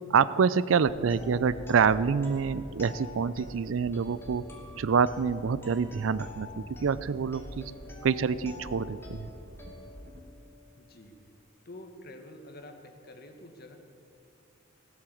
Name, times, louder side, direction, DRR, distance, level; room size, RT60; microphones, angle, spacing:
voice 1, 0.1-4.4 4.8-7.7 8.0-9.3, right 6 dB, 85° right, 17 dB, 0.4 m, -26 dB
sound 1, 0.9-10.2, equal, 55° right, 1.5 m, -47 dB
sound 2, 1.0-10.9, left 3 dB, 10° left, 2.4 m, -49 dB
voice 2, 10.8-11.1 11.6-13.8, left 1 dB, 55° left, 5 dB, 1.6 m, -47 dB
15.5 x 8.6 x 7.6 m, 2.7 s
head